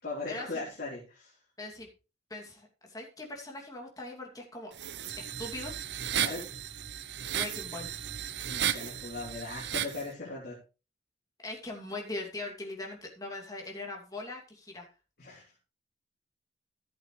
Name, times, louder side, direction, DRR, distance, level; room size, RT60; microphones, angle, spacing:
voice 1, 0.0-1.4 6.1-6.5 8.5-10.6 15.2-15.4, left 3 dB, 55° left, -6 dB, 3.3 m, -39 dB
voice 2, 1.6-1.9 2.3-4.7 5.2-5.7 7.3-8.0 11.4-14.9, left 2 dB, 20° left, 0 dB, 2.6 m, -40 dB
sound 1, 4.7-10.0, right 9 dB, 70° right, 0.7 m, -34 dB
14.5 x 8.1 x 3.2 m, 0.32 s
head